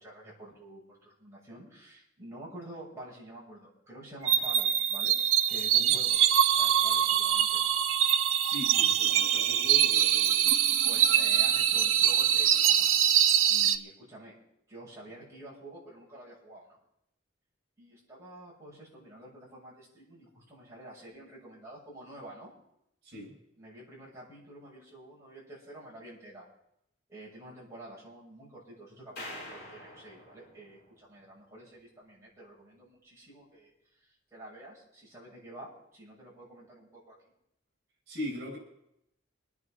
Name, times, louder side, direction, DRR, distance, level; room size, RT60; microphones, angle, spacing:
voice 1, 0.0-5.1 5.5-6.2 6.5-7.7 10.9-12.9 13.5-14.3 14.7-16.8 17.8-22.5 23.6-26.5 27.1-33.7 34.0-37.2, right 1 dB, 15° right, -7 dB, 6.9 m, -48 dB
sound 1, 4.2-13.8, right 10 dB, 75° right, 0.7 m, -24 dB
voice 2, 8.4-10.6 23.0-23.4 38.1-38.6, left 1 dB, 60° right, -2 dB, 5.9 m, -40 dB
sound 2, 29.2-31.5, left 1 dB, 50° left, 6.8 m, -46 dB
26.0 x 9.6 x 3.9 m, 0.80 s
head